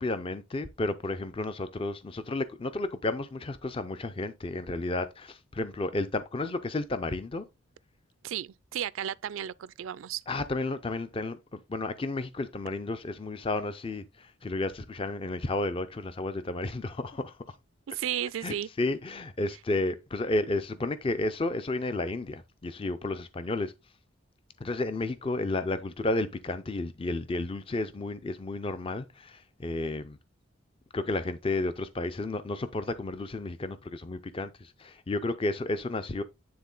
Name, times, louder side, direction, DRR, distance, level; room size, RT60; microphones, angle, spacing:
voice 1, 0.0-7.4 10.3-17.4 18.4-23.7 24.6-30.2 30.9-36.2, left 2 dB, 25° left, 0.4 m, -32 dB
voice 2, 8.2-10.2 17.9-18.7, right 10 dB, 65° right, 0.4 m, -34 dB
9.5 x 3.7 x 3.8 m
head